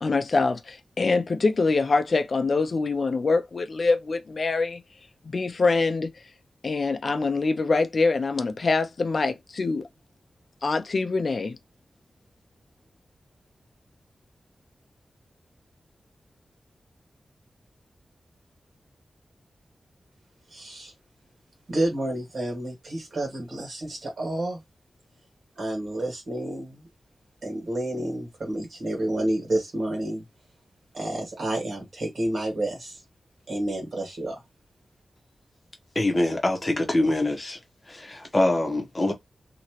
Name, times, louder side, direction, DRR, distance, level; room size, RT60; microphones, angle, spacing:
voice 1, 0.0-4.8 5.2-6.1 6.6-9.9 10.6-11.6, left 3 dB, 50° left, 0.5 m, -24 dB
voice 2, 20.5-20.9 21.7-24.6 25.6-26.9 27.4-30.2 30.9-33.0 33.5-34.4, right 1 dB, 60° right, 1.9 m, -29 dB
voice 3, 35.9-37.6 37.9-39.1, left 1 dB, 25° left, 1.0 m, -24 dB
2.9 x 2.9 x 3.0 m
wide cardioid pair, 145°, 0 cm